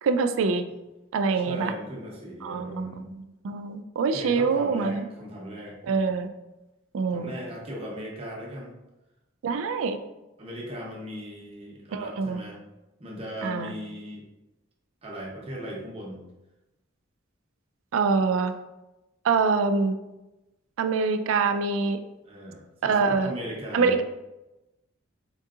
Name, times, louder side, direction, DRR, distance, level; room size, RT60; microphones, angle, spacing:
voice 1, 0.0-0.6 1.1-1.7 2.4-2.9 3.4-5.1 5.9-6.3 6.9-7.3 9.4-10.0 11.9-12.4 13.4-13.7 17.9-18.5 19.2-20.0 20.8-22.0 22.8-23.3 23.7-24.0, right 4 dB, 80° right, 9 dB, 0.3 m, -24 dB
voice 2, 1.3-3.1 4.1-6.1 7.1-8.8 10.4-12.6 13.0-14.2 15.0-16.2 22.2-24.0, equal, 30° right, -2 dB, 0.7 m, -38 dB
4.4 x 2.7 x 2.4 m, 0.99 s
head